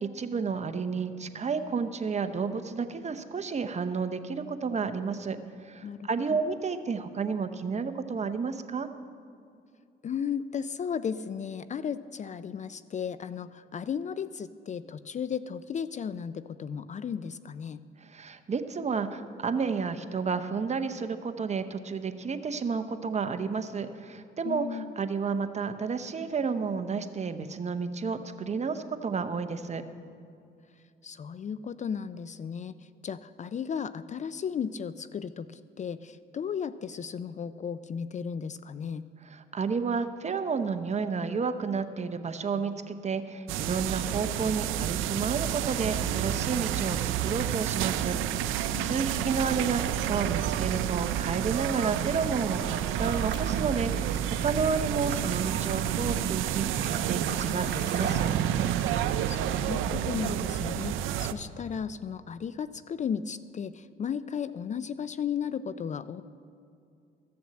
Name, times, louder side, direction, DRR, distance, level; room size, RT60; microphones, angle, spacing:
voice 1, 0.0-5.4 5.7-8.9 18.0-29.8 39.3-58.3, right 5 dB, 35° right, 9 dB, 0.8 m, -31 dB
voice 2, 5.8-6.4 10.0-17.8 24.4-24.9 31.0-32.7 33.0-39.0 48.7-49.3 59.3-66.2, left 7 dB, 35° left, 14 dB, 0.4 m, -35 dB
sound 1, 43.5-61.3, right 11 dB, 90° right, 0.5 m, -29 dB
sound 2, 52.4-59.7, right 6 dB, 65° right, 1.3 m, -41 dB
14.0 x 7.0 x 7.6 m, 2.5 s
cardioid pair, 90°, 20 cm